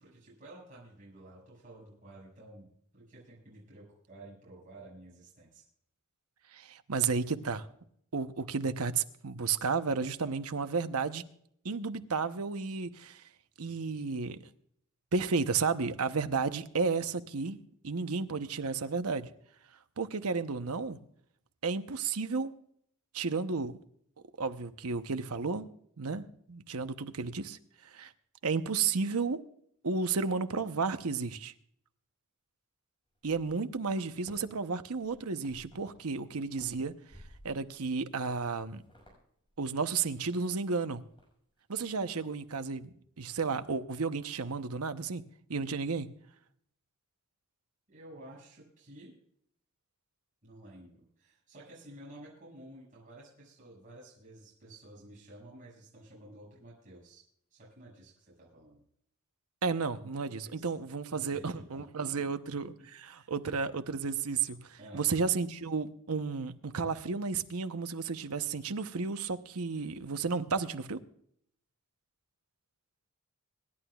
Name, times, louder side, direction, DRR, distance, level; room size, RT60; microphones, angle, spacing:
voice 1, 0.0-5.6 47.9-49.1 50.4-57.2 57.5-58.8 60.4-60.7 61.1-62.3 63.0-63.3 64.8-65.1, right 1 dB, 35° right, 6.0 m, -52 dB
voice 2, 6.5-7.7 8.1-11.2 11.6-13.2 13.6-14.4 15.1-19.3 20.0-21.0 21.6-22.5 23.1-23.7 24.4-25.7 26.0-27.6 27.9-28.1 28.4-29.4 29.8-31.5 33.2-36.9 37.4-38.8 39.6-41.0 41.7-45.2 45.5-46.1 59.6-71.0, right 4 dB, 80° right, 0.9 m, -32 dB
sound 1, 33.1-34.3 34.8-36.0 36.3-37.8 38.2-38.4 38.7-39.2 39.4-39.5 40.0-40.6 40.9-41.3 41.6-41.9, equal, 25° left, 5.9 m, -57 dB
26.5 x 11.0 x 2.4 m
head